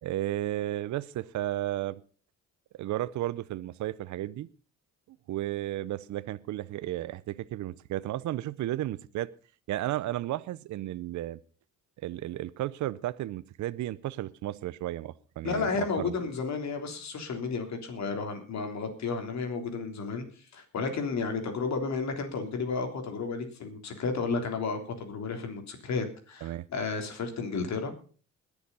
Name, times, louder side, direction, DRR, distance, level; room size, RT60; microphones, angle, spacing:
voice 1, 0.0-2.0 2.8-4.5 5.3-9.3 9.7-11.4 12.0-15.7 16.0-16.1 26.4-26.6, right 14 dB, 70° right, 0.7 m, -33 dB
voice 2, 15.4-27.9, left 4 dB, 65° left, 3.4 m, -32 dB
21.0 x 7.1 x 5.5 m
cardioid pair, 90°, 30 cm